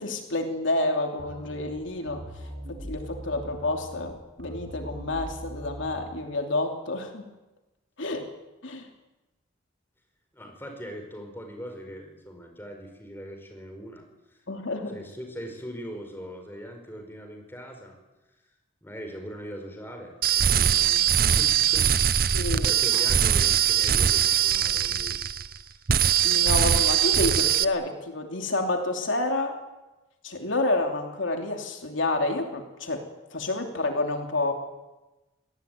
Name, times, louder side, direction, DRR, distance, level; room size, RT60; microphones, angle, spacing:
voice 1, 0.0-2.2 2.7-7.3 8.0-8.3 8.6-8.9 14.5-15.0 22.3-23.0 26.2-29.5 30.2-33.0 33.3-34.5, left 2 dB, 70° left, 4 dB, 3.0 m, -29 dB
sound 1, 1.2-6.2, equal, 65° right, 4.4 m, -41 dB
voice 2, 10.3-14.4 14.9-18.0 18.8-25.9, equal, 10° left, 4 dB, 4.8 m, -41 dB
sound 2, 20.2-25.6 25.9-27.6, right 9 dB, 45° right, 0.8 m, -22 dB
26.0 x 19.0 x 9.3 m, 1.1 s
head